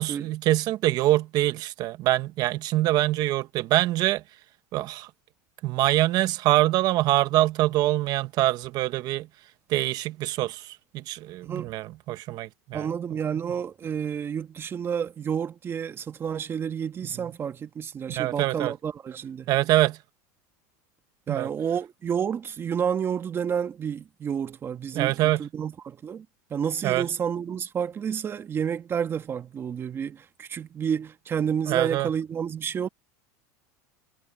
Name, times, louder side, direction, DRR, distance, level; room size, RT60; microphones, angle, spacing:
voice 1, 0.0-4.2 4.7-5.1 5.6-9.3 9.7-12.9 18.1-18.7 19.5-20.0 21.3-21.5 24.9-25.4 26.8-27.1 31.7-32.1, right 16 dB, 45° right, 1.4 m, -24 dB
voice 2, 12.7-19.5 21.3-26.3 26.5-32.9, right 7 dB, 25° right, 1.8 m, -30 dB
supercardioid pair, 130°, 9 cm